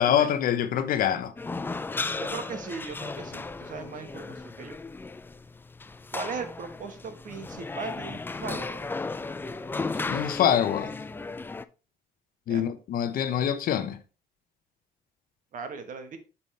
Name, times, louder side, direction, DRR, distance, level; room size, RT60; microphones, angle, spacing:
voice 1, 0.0-1.3 10.1-10.9 12.5-14.0, left 9 dB, 60° left, 0.8 m, -25 dB
sound 1, 1.4-11.6, left 3 dB, 10° left, 0.4 m, -35 dB
voice 2, 2.2-4.8 6.1-8.9 12.5-12.6 15.5-16.2, right 5 dB, 50° right, 1.3 m, -38 dB
7.0 x 5.4 x 3.3 m
cardioid pair, 110°, 17 cm